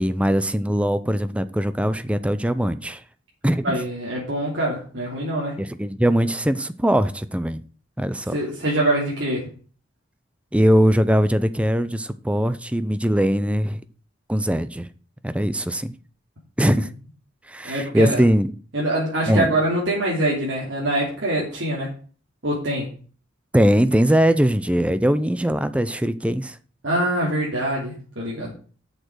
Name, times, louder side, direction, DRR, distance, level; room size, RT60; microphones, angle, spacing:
voice 1, 0.0-3.0 3.4-3.8 5.6-7.6 8.0-8.4 10.5-13.8 14.3-14.9 15.2-15.9 16.6-16.9 17.5-18.5 19.3-19.5 23.5-26.6, equal, 5° right, 0.6 m, -21 dB
voice 2, 3.6-5.6 8.3-9.5 17.6-18.2 18.7-21.9 22.4-22.9 26.8-28.5, right 1 dB, 70° right, 3.1 m, -24 dB
7.8 x 6.6 x 6.3 m
head